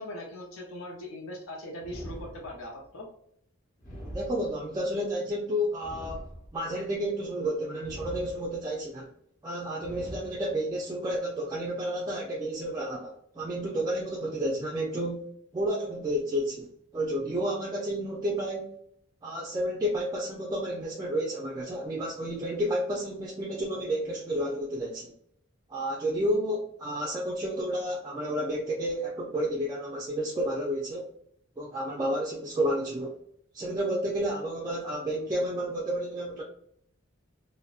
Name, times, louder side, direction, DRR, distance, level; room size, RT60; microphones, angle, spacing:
voice 1, 0.0-3.1, left 1 dB, 80° left, -2 dB, 0.6 m, -40 dB
sound 1, 1.8-2.9 3.8-4.9 5.8-6.9 7.8-8.8 9.8-10.8, equal, 45° left, 0.8 m, -43 dB
voice 2, 4.1-6.2 6.5-9.1 9.4-15.3 15.5-16.7 16.9-18.7 19.2-25.1 25.7-31.1 31.6-33.2 33.5-36.4, equal, 20° right, -4 dB, 0.3 m, -31 dB
2.6 x 2.1 x 2.3 m, 0.69 s
head